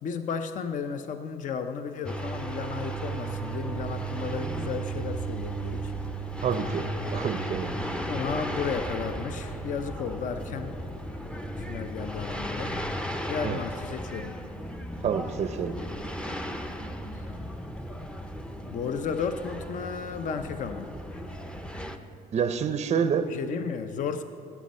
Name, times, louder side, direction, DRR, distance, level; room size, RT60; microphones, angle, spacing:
voice 1, 0.0-5.9 8.1-10.8 11.6-12.8 13.3-14.3 17.1-17.3 18.7-20.9 23.3-24.2, left 6 dB, 50° left, 9 dB, 0.6 m, -33 dB
sound 1, 2.0-22.0, right 1 dB, 5° left, 0.5 m, -35 dB
voice 2, 6.4-7.8 13.4-13.6 15.0-15.8 22.3-23.3, right 7 dB, 40° right, 9 dB, 0.5 m, -28 dB
18.0 x 8.1 x 4.2 m, 2.8 s
cardioid pair, 110°, 17 cm